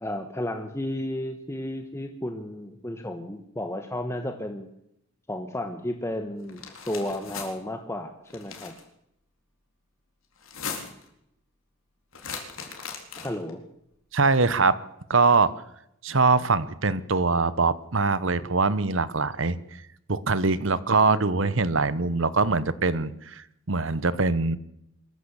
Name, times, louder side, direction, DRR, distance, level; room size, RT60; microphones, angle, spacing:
voice 1, 0.0-4.7 5.3-8.8 13.2-13.6, left 1 dB, 15° left, 6 dB, 1.3 m, -33 dB
sound 1, 6.5-7.5 8.3-8.8 10.4-11.1 12.1-13.5, left 6 dB, 75° left, 4.0 m, -38 dB
voice 2, 14.1-14.7 15.1-15.5 16.0-19.6 20.1-24.6, right 3 dB, 65° right, 16 dB, 1.1 m, -23 dB
23.5 x 14.5 x 8.3 m, 0.78 s
head